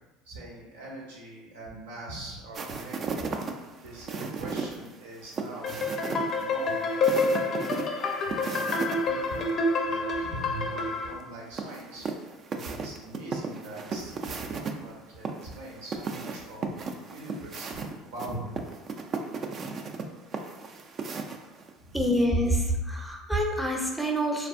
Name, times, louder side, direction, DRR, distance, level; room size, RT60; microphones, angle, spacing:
voice 1, 0.2-3.3 3.8-7.4 8.2-12.1 12.5-17.8 18.1-18.5 21.8-22.1, right 1 dB, 85° right, -3 dB, 0.8 m, -42 dB
sound 1, 2.5-9.0 9.3-9.4 11.6-14.7 15.2-21.7, right 4 dB, 45° right, 0.3 m, -35 dB
sound 2, 5.6-11.1, left 2 dB, 45° left, 0.4 m, -28 dB
voice 2, 21.9-24.5, equal, 5° right, 0 dB, 0.6 m, -26 dB
3.3 x 2.3 x 2.5 m, 1.1 s
hypercardioid pair, 85°, 0 cm